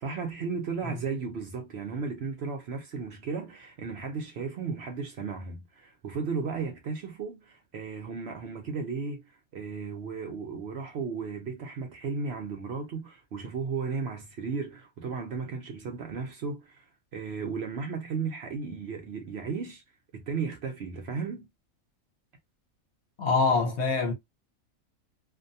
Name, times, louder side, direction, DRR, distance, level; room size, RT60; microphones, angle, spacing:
voice 1, 0.0-19.8 20.1-21.5, right 5 dB, 60° right, 0.8 m, -35 dB
voice 2, 23.2-24.1, left 4 dB, 60° left, 1.0 m, -24 dB
2.5 x 2.2 x 2.6 m
omnidirectional pair, 1.4 m